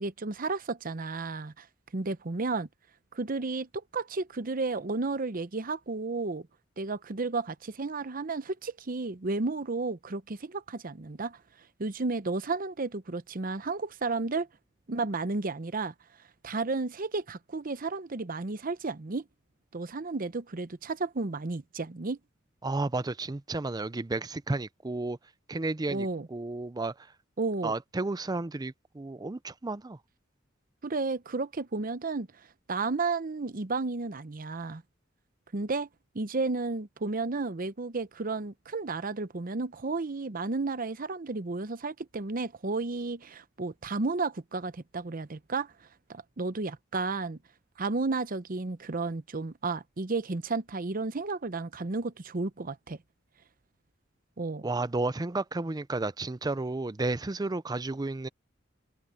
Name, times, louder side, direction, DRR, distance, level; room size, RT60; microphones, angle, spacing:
voice 1, 0.0-1.6 1.9-2.7 3.1-6.5 6.8-11.4 11.8-14.5 14.9-15.9 16.4-19.2 19.7-22.2 25.9-26.3 27.4-27.7 30.8-32.3 32.7-34.8 35.5-35.9 36.1-45.7 46.1-47.4 47.8-53.0 54.4-54.7, right 3 dB, 45° right, 0.8 m, -32 dB
voice 2, 22.6-25.2 25.5-26.9 27.6-30.0 54.6-58.3, right 2 dB, 20° right, 0.5 m, -32 dB
head